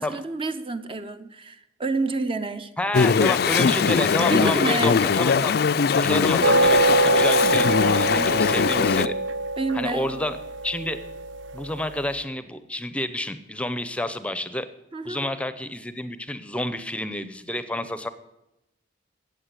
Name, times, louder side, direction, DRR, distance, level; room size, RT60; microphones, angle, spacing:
voice 1, 0.0-2.7 4.3-5.0 9.6-10.2 14.9-15.3, right 3 dB, 30° right, 0.7 m, -28 dB
voice 2, 2.8-5.5 5.9-9.1 9.7-10.4 10.6-11.0 11.5-14.7 15.0-18.1, left 1 dB, 5° left, 0.7 m, -29 dB
Chatter / Stream, 2.9-9.1, left 6 dB, 55° left, 0.4 m, -21 dB
sound 1, 6.4-11.9, right 2 dB, 70° right, 0.6 m, -24 dB
14.0 x 8.4 x 8.2 m
head